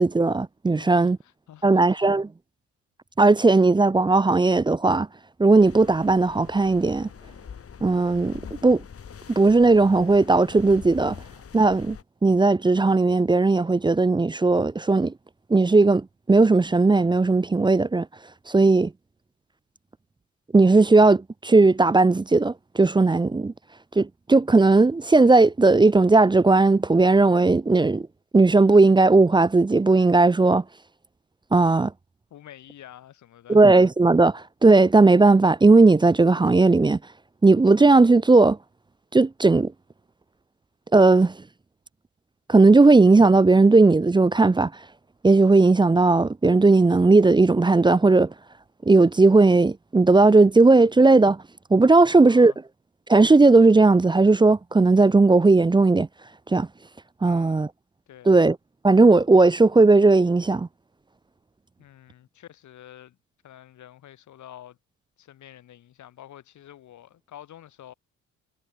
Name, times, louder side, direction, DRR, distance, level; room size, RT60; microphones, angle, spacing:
voice 1, 0.0-1.2 1.6-2.3 3.2-5.1 5.4-7.1 7.8-8.8 9.3-11.2 11.5-12.0 12.2-15.1 15.5-18.1 18.5-18.9 20.5-23.5 24.0-28.1 28.3-30.6 31.5-31.9 33.5-37.0 37.4-38.6 39.1-39.7 40.9-41.4 42.5-44.7 45.2-48.3 48.9-51.4 51.7-52.5 53.1-56.1 56.5-56.7 57.2-57.7 58.3-58.6 58.8-60.7, right 3 dB, 15° right, 0.6 m, -17 dB
voice 2, 0.8-2.1 32.3-33.7 52.0-52.6 57.2-57.7 58.1-58.4 61.8-63.2 63.4-64.8 65.2-67.9, left 11 dB, 65° left, 4.4 m, -48 dB
sound 1, 5.6-12.0, left 7 dB, 50° left, 7.7 m, -43 dB
supercardioid pair, 70°, 31 cm